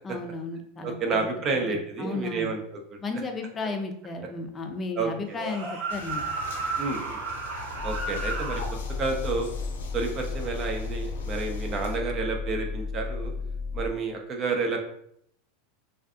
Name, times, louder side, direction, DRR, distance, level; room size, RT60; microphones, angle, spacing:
voice 1, 0.0-1.2 1.5-2.5 3.0-6.2, left 3 dB, 25° left, 4 dB, 0.5 m, -34 dB
voice 2, 0.8-2.6 5.0-5.4 6.8-7.2 7.8-9.5 9.9-13.3 13.7-14.8, right 4 dB, 40° right, 3 dB, 0.5 m, -30 dB
sound 1, 5.3-8.7, right 3 dB, 75° right, 1.0 m, -33 dB
sound 2, 5.9-12.0, left 3 dB, 90° left, 0.4 m, -43 dB
sound 3, 7.7-13.9, left 4 dB, 70° left, 0.8 m, -33 dB
2.5 x 2.4 x 2.3 m, 0.71 s
hypercardioid pair, 105°, 0 cm